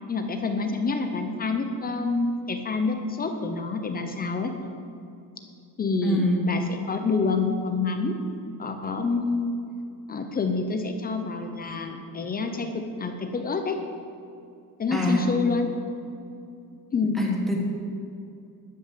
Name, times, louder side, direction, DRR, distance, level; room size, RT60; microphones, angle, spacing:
voice 1, 0.1-4.5 5.8-6.6 6.9-8.1 8.6-9.5 10.1-13.8 14.8-15.7 16.9-17.2, left 4 dB, 25° left, 5 dB, 0.7 m, -27 dB
voice 2, 6.0-6.5 14.9-15.2 17.2-17.6, left 1 dB, ahead, -2 dB, 1.3 m, -24 dB
12.5 x 6.3 x 7.5 m, 2.5 s
cardioid pair, 175°, 39 cm